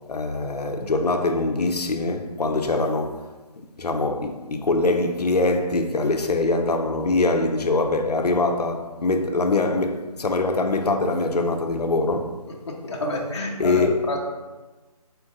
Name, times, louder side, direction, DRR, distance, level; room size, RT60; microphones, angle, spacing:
voice 1, 0.0-3.3 3.8-12.3 13.6-14.2, left 3 dB, 85° left, 0.6 m, -23 dB
voice 2, 12.5-14.2, left 1 dB, 45° left, 0.7 m, -29 dB
4.3 x 2.5 x 3.9 m
figure-of-eight pair, 160°, 20 cm